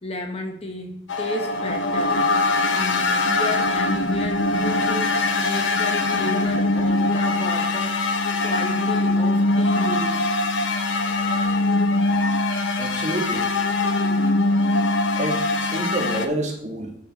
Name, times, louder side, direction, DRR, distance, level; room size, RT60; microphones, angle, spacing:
voice 1, 0.0-2.2 2.7-8.0 8.4-10.3, left 2 dB, 30° left, 4 dB, 1.2 m, -33 dB
sound 1, 1.1-16.3, left 2 dB, 85° left, 0.9 m, -22 dB
voice 2, 12.5-13.5 15.1-16.9, right 1 dB, 40° right, 2 dB, 1.6 m, -28 dB
12.0 x 4.7 x 4.1 m, 0.70 s
head